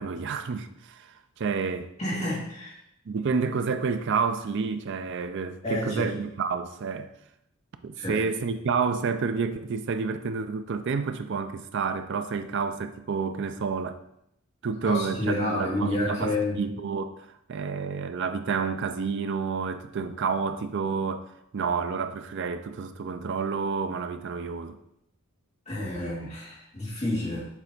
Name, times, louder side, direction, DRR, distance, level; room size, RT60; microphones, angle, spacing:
voice 1, 0.0-1.9 3.1-7.1 7.8-14.0 14.6-24.8, right 5 dB, 55° right, 0.4 m, -29 dB
voice 2, 2.0-2.7 5.6-6.1 8.0-8.2 14.9-16.6 25.7-27.5, left 1 dB, 30° left, 2.1 m, -29 dB
7.2 x 3.3 x 4.0 m
head